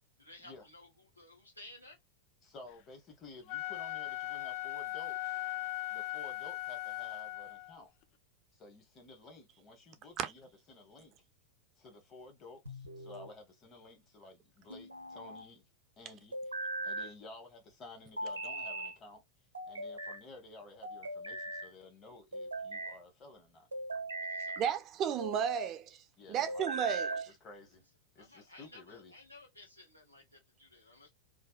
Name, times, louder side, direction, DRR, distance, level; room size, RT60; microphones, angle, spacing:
voice 1, 0.2-0.9 1.2-2.0 24.2-24.6 28.2-31.1, left 2 dB, 90° left, 0.9 m, -55 dB
voice 2, 2.4-5.4 5.9-7.9 8.5-11.1 11.8-15.7 16.0-16.4 16.8-19.2 19.7-23.7 26.2-26.7 27.3-27.8 28.1-29.1, left 2 dB, 25° left, 1.1 m, -53 dB
Wind instrument woodwind instrument, 3.4-7.8, left 16 dB, 45° left, 0.3 m, -39 dB
sound 1, 12.7-13.3 14.7-15.5 16.3-17.1 18.2-19.0 19.5-20.2 20.8-21.7 22.3-23.0 23.7-24.7 25.2-25.7 26.5-27.3, right 2 dB, 80° right, 0.5 m, -39 dB
voice 3, 24.6-26.0 26.3-27.3, right 8 dB, 35° right, 0.4 m, -33 dB
2.6 x 2.2 x 2.2 m
figure-of-eight pair, 90°, 0 cm